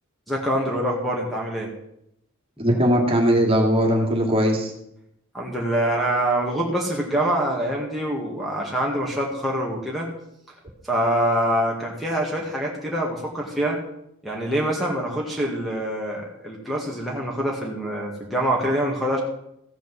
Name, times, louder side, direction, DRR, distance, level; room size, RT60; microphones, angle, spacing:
voice 1, 0.3-1.7 2.6-2.7 5.3-10.1 10.8-13.8 14.2-19.2, right 1 dB, ahead, -2 dB, 2.1 m, -25 dB
voice 2, 2.6-4.7, equal, 25° right, 1 dB, 2.6 m, -19 dB
15.0 x 7.1 x 7.7 m, 0.78 s
head